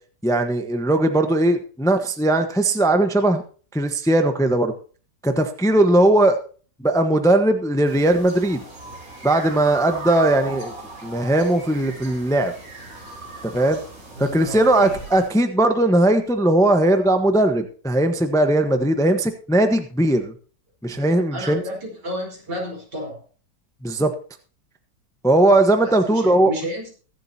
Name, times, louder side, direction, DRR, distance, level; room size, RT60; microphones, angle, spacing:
voice 1, 0.2-3.4 3.7-4.7 5.2-6.4 6.8-8.6 9.2-10.7 11.0-12.5 13.4-13.8 14.2-20.3 20.8-21.6 23.8-24.1 25.2-26.5, right 1 dB, ahead, 7 dB, 0.9 m, -19 dB
sound 1, 7.8-15.3, right 2 dB, 50° right, 4.4 m, -37 dB
voice 2, 14.1-14.9 21.3-23.2 25.8-26.9, equal, 75° right, -1 dB, 5.2 m, -32 dB
22.5 x 7.7 x 2.8 m, 0.39 s
omnidirectional pair, 1.8 m